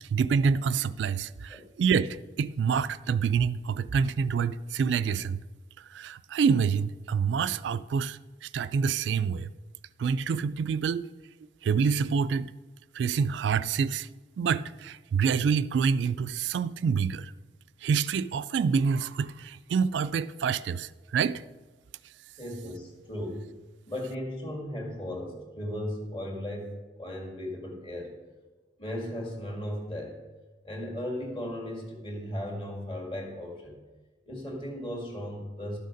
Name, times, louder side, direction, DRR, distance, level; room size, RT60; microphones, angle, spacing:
voice 1, 0.0-5.4 5.9-9.5 10.0-11.1 11.6-12.5 12.9-14.1 14.4-17.3 17.8-21.4, right 6 dB, 80° right, 0.3 m, -27 dB
voice 2, 22.4-23.5 23.9-28.2 28.8-30.2 30.6-33.8 34.3-35.8, left 1 dB, 30° left, 1.9 m, -36 dB
12.0 x 6.5 x 5.1 m
head